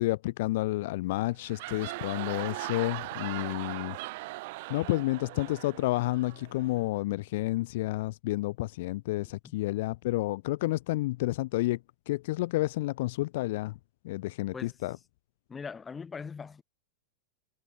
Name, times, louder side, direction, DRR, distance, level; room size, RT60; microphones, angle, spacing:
voice 1, 0.0-4.0 4.7-11.8 12.1-13.8 14.0-15.0, left 18 dB, 50° left, 0.5 m, -30 dB
sound 1, 1.3-6.9, right 22 dB, 50° right, 0.4 m, -39 dB
voice 2, 15.5-16.6, left 5 dB, 15° left, 3.0 m, -40 dB
figure-of-eight pair, 90°, 0 cm